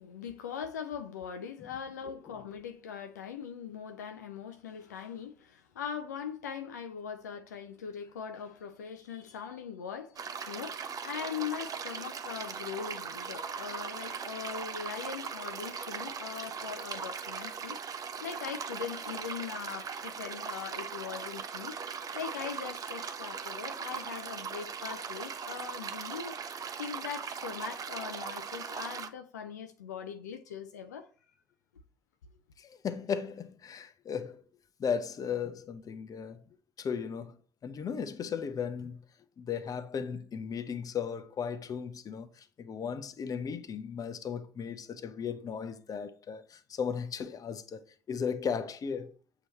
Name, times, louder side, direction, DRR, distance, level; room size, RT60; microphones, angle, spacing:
voice 1, 0.0-21.8 22.1-26.4 26.8-31.1, left 7 dB, 80° left, 0.5 m, -41 dB
voice 2, 2.0-2.3 32.6-34.4 34.8-36.4 36.8-39.0 39.4-49.1, left 6 dB, 40° left, 0.8 m, -36 dB
sound 1, 10.2-29.1, right 6 dB, 40° right, 0.7 m, -39 dB
7.9 x 3.0 x 4.2 m
figure-of-eight pair, 50°, 9 cm